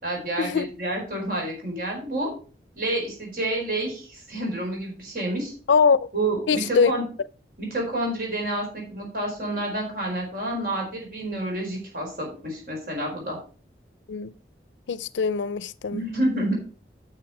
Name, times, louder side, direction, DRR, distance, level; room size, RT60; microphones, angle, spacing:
voice 1, 0.0-2.3 2.7-5.5 6.1-7.0 7.6-13.4 15.9-16.5, right 1 dB, 50° right, 4.7 m, -29 dB
voice 2, 5.7-6.1 6.5-6.9 14.1-14.3 14.9-16.0, left 5 dB, 90° left, 0.4 m, -22 dB
9.4 x 6.8 x 4.8 m
head